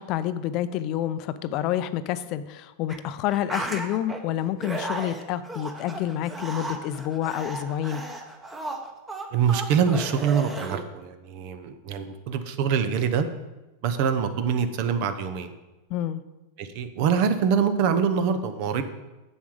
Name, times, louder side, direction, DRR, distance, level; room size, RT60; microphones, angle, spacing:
voice 1, 0.0-8.0 15.9-16.2, left 11 dB, 50° left, 13 dB, 0.5 m, -28 dB
sound 1, 2.9-3.0 3.3-4.2 4.6-10.8, right 2 dB, 15° right, 1.2 m, -35 dB
voice 2, 9.3-13.3 13.8-15.5 16.6-18.8, right 7 dB, 55° right, 9 dB, 0.9 m, -24 dB
7.3 x 7.1 x 5.0 m, 1.1 s
hypercardioid pair, 105°, 0 cm